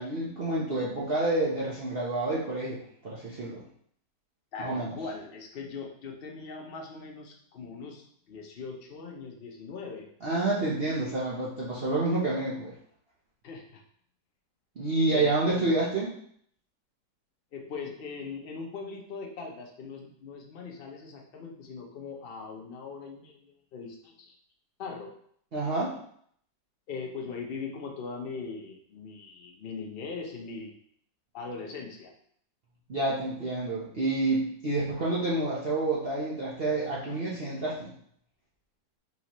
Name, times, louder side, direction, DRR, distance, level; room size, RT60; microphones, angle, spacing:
voice 1, 0.0-3.6 4.6-4.9 10.2-12.7 14.8-16.1 25.5-25.9 32.9-37.9, right 2 dB, 50° right, -7 dB, 0.7 m, -28 dB
voice 2, 4.5-10.1 13.4-13.8 15.1-15.7 17.5-24.4 24.8-25.1 26.9-30.7 31.3-32.1, left 4 dB, 80° left, 1 dB, 0.5 m, -40 dB
4.1 x 4.0 x 3.0 m, 0.63 s
omnidirectional pair, 1.9 m